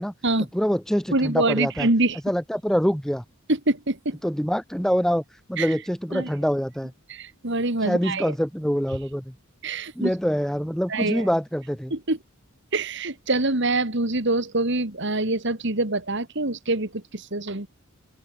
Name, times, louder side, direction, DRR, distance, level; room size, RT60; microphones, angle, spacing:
voice 1, 0.5-1.9 2.3-3.2 4.2-5.2 5.5-6.9 7.8-9.3 10.0-11.9, equal, ahead, 1.8 m, -25 dB
voice 2, 1.1-2.2 3.5-4.2 5.6-5.7 6.1-6.3 7.1-8.3 9.6-10.1 10.9-11.3 11.9-12.2 12.7-17.7, right 2 dB, 55° right, 2.6 m, -25 dB
open air
head